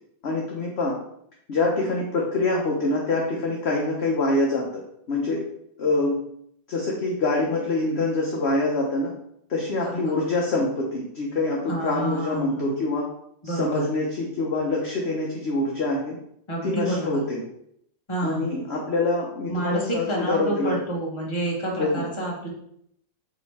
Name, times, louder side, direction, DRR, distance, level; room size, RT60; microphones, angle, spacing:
voice 1, 0.2-1.0 1.5-5.4 5.8-6.2 6.7-9.1 9.5-13.1 13.4-16.2 16.6-17.4 18.2-20.8 21.8-22.0, left 2 dB, 50° left, -2 dB, 0.9 m, -25 dB
voice 2, 9.7-10.1 11.7-12.7 13.4-13.8 16.5-17.2 18.1-18.5 19.5-22.5, right 1 dB, 15° left, -3 dB, 1.3 m, -29 dB
6.2 x 3.2 x 4.8 m, 0.72 s
omnidirectional pair, 2.0 m